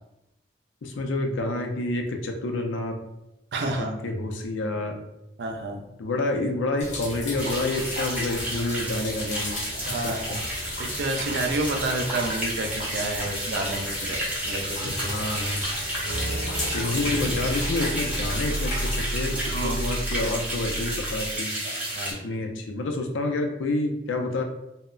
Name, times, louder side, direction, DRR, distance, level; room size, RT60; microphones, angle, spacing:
voice 1, 0.8-3.0 3.6-5.0 6.0-9.6 10.0-10.4 14.8-15.7 16.7-21.5 22.2-24.4, left 2 dB, 90° left, 4 dB, 0.4 m, -28 dB
voice 2, 3.5-3.9 5.4-5.8 9.9-10.3 10.8-14.2 14.4-15.1 19.5-19.8 21.9-22.4, right 2 dB, 65° right, 3 dB, 0.4 m, -30 dB
sound 1, 6.8-19.0, left 1 dB, 40° left, 0.6 m, -35 dB
sound 2, 7.4-22.1, right 1 dB, 5° right, 0.6 m, -32 dB
sound 3, 16.0-21.2, right 1 dB, 90° right, 0.8 m, -32 dB
2.1 x 2.0 x 3.7 m, 0.89 s
head